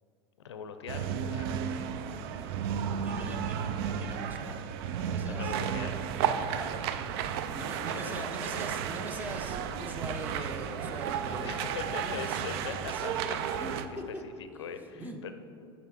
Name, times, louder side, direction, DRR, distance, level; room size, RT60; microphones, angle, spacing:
voice 1, 0.4-1.5 5.3-6.1 7.9-8.3 11.4-13.6 13.9-15.3, left 7 dB, 85° left, 9 dB, 0.5 m, -41 dB
sound 1, 0.9-13.9, right 8 dB, 65° right, 0.4 m, -33 dB
voice 2, 2.9-4.6 5.0-5.6 6.2-13.0 13.6-13.8 14.1-14.2 15.0-15.3, equal, 10° right, 4 dB, 0.8 m, -43 dB
6.7 x 4.9 x 4.8 m, 2.6 s
hypercardioid pair, 90°, 14 cm